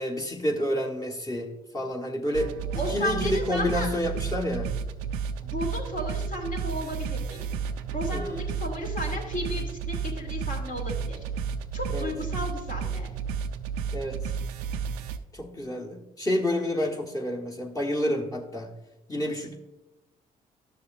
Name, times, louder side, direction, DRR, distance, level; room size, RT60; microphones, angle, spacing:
voice 1, 0.0-4.7 8.1-8.5 11.9-12.1 13.9-14.2 15.3-18.7 19.1-19.6, equal, 20° left, -1 dB, 1.4 m, -29 dB
sound 1, 2.3-15.2, right 6 dB, 90° right, 0.4 m, -32 dB
voice 2, 2.7-3.9 5.4-7.6 7.9-11.2 11.7-13.1, left 1 dB, 50° left, 1 dB, 2.5 m, -34 dB
12.0 x 6.7 x 2.6 m, 1.0 s
hypercardioid pair, 50°, 18 cm